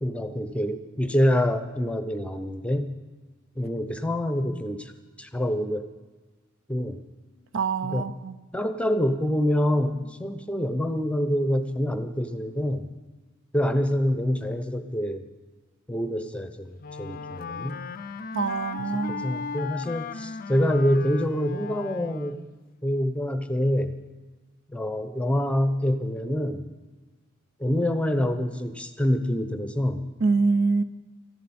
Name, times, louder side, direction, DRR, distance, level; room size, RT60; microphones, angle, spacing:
voice 1, 0.0-2.9 3.6-4.9 5.2-5.9 6.7-7.0 7.8-8.1 8.5-12.9 13.5-15.3 15.9-17.8 18.9-22.4 22.8-24.0 24.7-26.7 27.6-30.0, equal, 5° left, 8 dB, 0.8 m, -26 dB
voice 2, 7.5-8.3 18.3-19.3 30.2-30.8, right 4 dB, 60° right, 13 dB, 0.6 m, -24 dB
Wind instrument woodwind instrument, 16.8-22.5, left 5 dB, 45° left, 0.5 m, -37 dB
19.5 x 13.5 x 4.3 m, 1.3 s
head